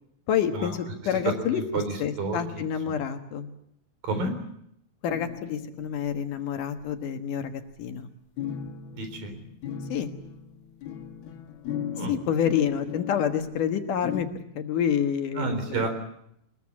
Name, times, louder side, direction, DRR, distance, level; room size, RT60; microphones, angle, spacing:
voice 1, 0.3-3.5 5.0-8.1 9.9-10.1 12.1-15.9, left 8 dB, 65° left, 6 dB, 2.8 m, -28 dB
voice 2, 1.2-2.6 4.0-4.3 8.9-9.4 11.9-12.2 15.3-15.9, right 3 dB, 70° right, 7 dB, 5.6 m, -30 dB
sound 1, 5.1-6.4 6.7-6.8 8.4-14.2, left 9 dB, 85° left, 3.4 m, -37 dB
23.0 x 21.5 x 8.6 m, 0.75 s
omnidirectional pair, 4.2 m